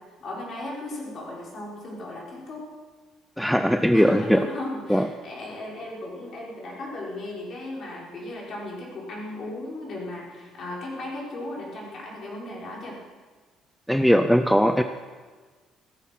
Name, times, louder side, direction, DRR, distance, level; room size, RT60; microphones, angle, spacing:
voice 1, 0.2-2.7 3.9-13.0, left 1 dB, 45° left, -3 dB, 5.0 m, -36 dB
voice 2, 3.4-4.5 4.9-5.1 13.9-14.8, equal, ahead, 8 dB, 0.5 m, -19 dB
16.5 x 13.5 x 5.9 m, 1.4 s
cardioid pair, 150°, 0 cm